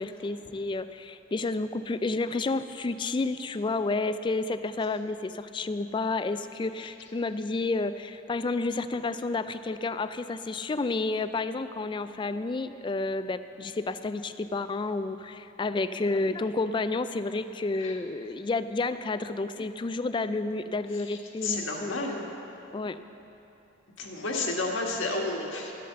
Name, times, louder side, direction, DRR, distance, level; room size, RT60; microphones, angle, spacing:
voice 1, 0.0-22.0 22.7-23.0, left 3 dB, 25° left, 12 dB, 0.3 m, -30 dB
voice 2, 21.4-22.2 24.0-25.7, left 2 dB, 75° left, -1 dB, 1.6 m, -31 dB
11.5 x 8.5 x 6.8 m, 2.9 s
head